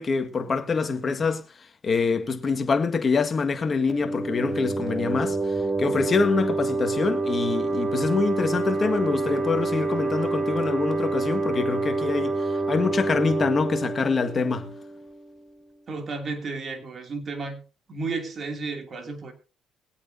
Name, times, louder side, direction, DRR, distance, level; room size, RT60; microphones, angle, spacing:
voice 1, 0.0-1.4 1.8-14.7, left 4 dB, 35° left, 1.8 m, -25 dB
sound 1, 3.9-15.3, right 3 dB, 10° right, 3.4 m, -27 dB
voice 2, 15.9-17.6 17.9-19.3, right 3 dB, 40° right, 2.8 m, -32 dB
22.5 x 8.5 x 2.8 m
cardioid pair, 90°, 0 cm